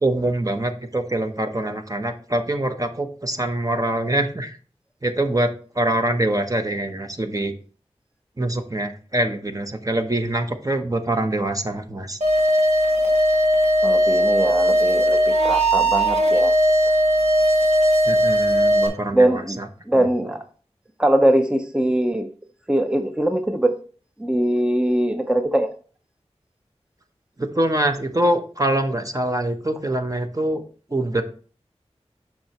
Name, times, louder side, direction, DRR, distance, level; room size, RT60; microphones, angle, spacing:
voice 1, 0.0-4.6 5.0-7.5 8.4-12.2 18.0-19.7 19.9-20.3 27.4-30.6 30.9-31.2, right 1 dB, 30° right, 6 dB, 0.9 m, -24 dB
sound 1, 12.2-18.9, equal, 75° right, 1.7 m, -18 dB
voice 2, 13.8-16.5 19.1-19.6 19.9-20.4 21.0-22.3 22.7-23.7 24.2-25.7, right 1 dB, 10° right, 6 dB, 0.6 m, -21 dB
7.3 x 5.8 x 3.0 m, 0.41 s
wide cardioid pair, 40°, 12 cm